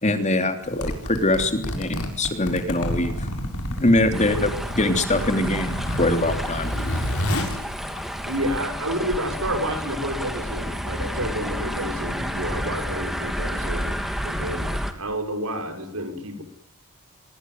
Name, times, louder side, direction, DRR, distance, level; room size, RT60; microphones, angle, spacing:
voice 1, 0.0-3.3 3.8-6.7, left 1 dB, 30° left, 6 dB, 3.3 m, -23 dB
Zipper (clothing), 0.6-8.6, left 1 dB, 65° left, 6.9 m, -30 dB
sound 1, 4.1-14.9, equal, ahead, 2.7 m, -30 dB
voice 2, 8.3-13.9 14.2-14.7 15.0-16.4, equal, 75° right, 6 dB, 5.9 m, -29 dB
25.5 x 22.5 x 9.6 m, 0.70 s
head